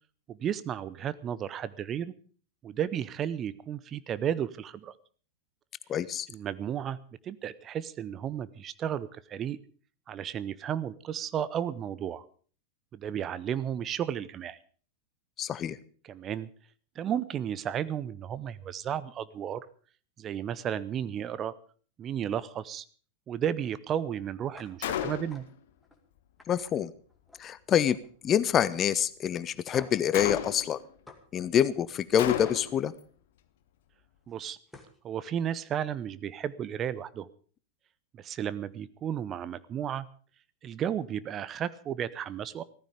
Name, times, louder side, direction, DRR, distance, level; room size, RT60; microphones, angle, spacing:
voice 1, 0.3-2.1 2.6-5.0 6.3-7.0 7.2-9.6 10.1-12.2 12.9-14.6 16.0-16.5 17.0-19.7 20.2-21.5 22.0-22.8 23.3-25.5 34.3-34.6 35.0-37.3 38.2-40.1 40.6-42.6, right 9 dB, 30° right, 16 dB, 0.7 m, -33 dB
voice 2, 5.9-6.3 15.4-15.8 26.5-26.9 27.4-28.0 28.2-30.8 31.3-32.9, left 9 dB, 25° left, 17 dB, 0.7 m, -26 dB
sound 1, 24.5-24.7 25.1-25.4 25.8-26.0 26.4-27.6 27.9-28.3 28.7-28.8 29.7-30.1 31.1-31.2 32.4-32.6 34.3-34.4 34.7-35.0, left 3 dB, 5° left, 2.3 m, -49 dB
Gunshot gunfire, 24.8-25.5 30.1-30.8 32.2-32.9, left 10 dB, 55° left, 1.3 m, -32 dB
15.0 x 14.0 x 5.1 m, 0.43 s
figure-of-eight pair, 90°, 0 cm